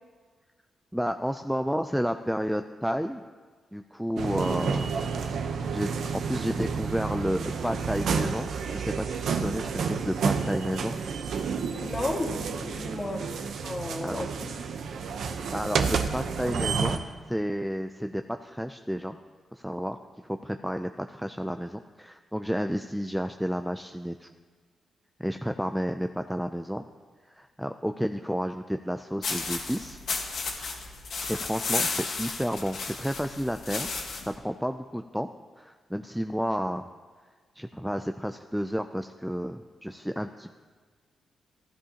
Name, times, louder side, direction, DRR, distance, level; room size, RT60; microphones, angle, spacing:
voice 1, 0.9-3.2 3.7-4.9 5.7-11.0 14.0-14.2 15.5-17.0 17.3-19.2 19.5-20.0 20.2-24.3 25.2-26.8 27.3-30.0 31.3-33.9 34.4-35.3 35.6-36.9 37.6-40.5, equal, ahead, 7 dB, 0.3 m, -31 dB
sound 1, 4.2-17.0, right 5 dB, 75° right, 0.8 m, -30 dB
voice 2, 11.8-13.2 13.6-14.5, left 2 dB, 20° left, 0 dB, 1.7 m, -33 dB
sound 2, 29.2-34.3, left 4 dB, 65° left, 1.5 m, -33 dB
15.5 x 11.0 x 2.9 m, 1.5 s
cardioid pair, 125°, 0 cm